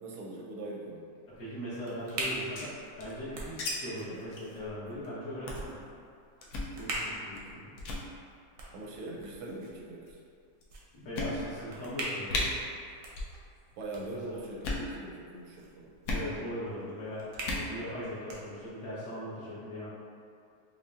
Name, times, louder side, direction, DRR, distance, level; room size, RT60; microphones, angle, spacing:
voice 1, 0.0-1.0 8.7-10.2 13.8-15.9, right 2 dB, 85° right, -2 dB, 1.4 m, -42 dB
sound 1, 1.2-19.0, right 1 dB, 70° right, 0.8 m, -44 dB
voice 2, 1.4-5.8 6.8-7.7 10.9-12.6 13.9-14.4 16.1-19.9, equal, 60° left, -10 dB, 1.5 m, -40 dB
sound 2, 2.3-3.7 4.0-4.1 4.3-4.5 4.9-5.1 5.5-5.7 6.4-6.7 7.3-7.5 7.8-8.0 8.9-9.4 10.1-10.2 10.6-10.7 11.1-11.7 12.0-12.1 12.3-12.4 13.1-13.4 13.6-14.0 14.5-14.9 16.0-16.3 17.3-17.7, left 2 dB, 90° left, 0.7 m, -35 dB
5.4 x 2.0 x 2.4 m, 2.3 s
omnidirectional pair, 2.1 m